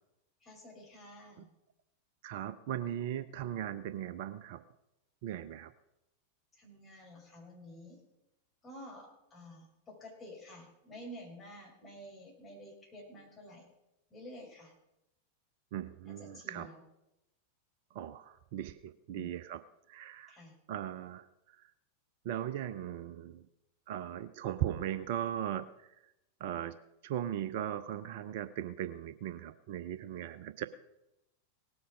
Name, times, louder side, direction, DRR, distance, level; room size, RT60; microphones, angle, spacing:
voice 1, 0.4-1.5 6.5-8.0 8.6-13.7 14.1-14.7 16.1-16.8 19.1-19.3 20.3-20.5, equal, 15° left, -3 dB, 5.9 m, -50 dB
voice 2, 2.2-4.6 5.2-5.7 15.7-16.7 17.9-20.4 20.7-21.3 21.6-21.7 22.2-23.5 23.9-25.9 26.4-26.8 27.0-30.6, right 11 dB, 50° right, 14 dB, 0.5 m, -38 dB
18.5 x 7.8 x 5.3 m, 0.88 s
figure-of-eight pair, 90°, 0 cm